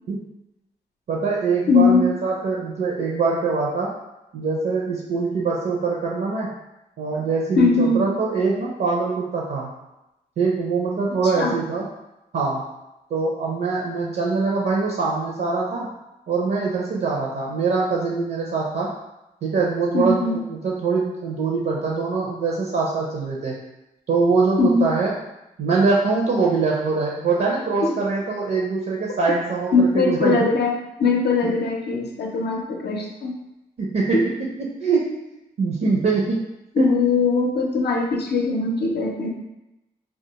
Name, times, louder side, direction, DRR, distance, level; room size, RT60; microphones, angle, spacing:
voice 1, 1.1-3.9 4.3-6.5 7.0-9.7 10.4-11.9 12.3-12.6 13.1-15.9 16.3-18.9 19.4-23.6 24.1-25.1 25.6-30.5 31.4-31.5 33.8-35.1 35.6-36.4 36.8-36.9, right 4 dB, 60° right, -2 dB, 0.5 m, -23 dB
voice 2, 1.7-2.0 7.6-8.1 11.2-11.5 19.9-20.4 24.6-24.9 27.8-27.9 29.7-33.3 34.1-34.2 36.8-39.3, left 4 dB, 65° left, 1 dB, 0.5 m, -20 dB
2.3 x 2.2 x 2.9 m, 0.95 s
supercardioid pair, 40°, 18 cm